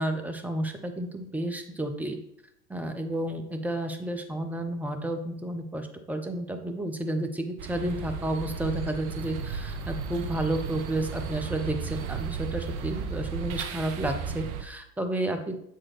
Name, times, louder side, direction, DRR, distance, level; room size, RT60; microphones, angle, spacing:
voice 1, 0.0-2.2 2.7-15.5, right 1 dB, 5° right, 6 dB, 0.4 m, -31 dB
sound 1, 7.6-14.6, right 6 dB, 45° right, 0.8 m, -34 dB
7.2 x 4.3 x 3.2 m, 0.75 s
figure-of-eight pair, 90°, 44 cm